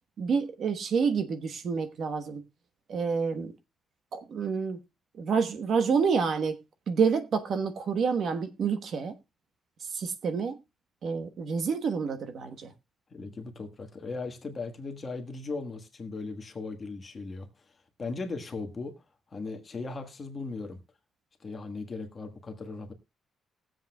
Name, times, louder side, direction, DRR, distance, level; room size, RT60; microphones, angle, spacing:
voice 1, 0.2-2.4 2.9-3.5 4.1-4.8 5.2-6.6 6.9-9.1 9.8-10.6 11.0-12.7, right 5 dB, 50° right, 1.1 m, -28 dB
voice 2, 13.1-17.5 18.0-19.0 19.3-20.8 21.4-22.9, left 3 dB, 25° left, 1.5 m, -37 dB
20.5 x 7.7 x 2.2 m
cardioid pair, 160°, 0 cm